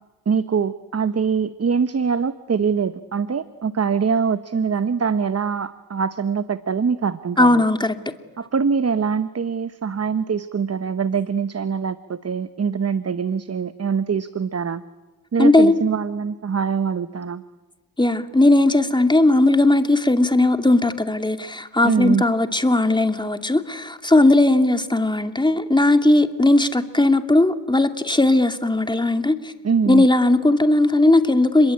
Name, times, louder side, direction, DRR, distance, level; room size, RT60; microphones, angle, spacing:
voice 1, 0.3-7.6 8.4-14.8 15.3-17.4 21.8-22.2 29.6-30.1, right 6 dB, 40° right, 1.1 m, -23 dB
voice 2, 7.4-7.9 15.4-15.8 18.0-29.5 29.9-31.7, left 2 dB, 10° left, 2.6 m, -17 dB
30.0 x 22.5 x 8.8 m
supercardioid pair, 55°, 40 cm